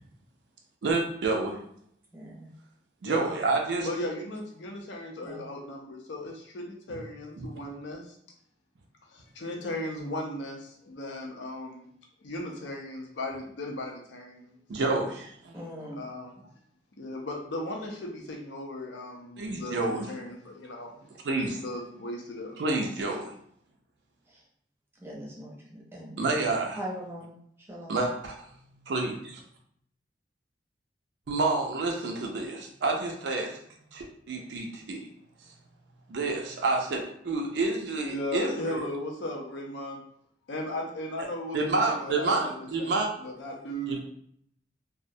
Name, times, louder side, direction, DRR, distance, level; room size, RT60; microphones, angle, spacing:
voice 1, 0.8-1.6 3.0-3.9 7.4-7.5 14.7-15.5 19.4-20.1 21.2-21.5 22.6-23.3 26.2-26.8 27.9-28.5 28.9-29.4 31.3-33.6 33.9-35.1 36.1-38.8 41.5-43.1 43.9-44.0, right 3 dB, 70° right, 1 dB, 0.4 m, -29 dB
voice 2, 2.1-2.5 5.2-5.5 15.5-16.0 24.3-24.4 25.0-26.1 26.8-27.3 27.7-28.0, equal, 15° right, -4 dB, 0.6 m, -40 dB
voice 3, 3.0-3.4 3.8-8.2 9.1-11.9 12.2-14.6 16.0-16.5 17.0-22.6 38.1-40.0 40.5-44.0, left 1 dB, 75° left, 1 dB, 0.5 m, -37 dB
2.3 x 2.0 x 2.6 m, 0.68 s
head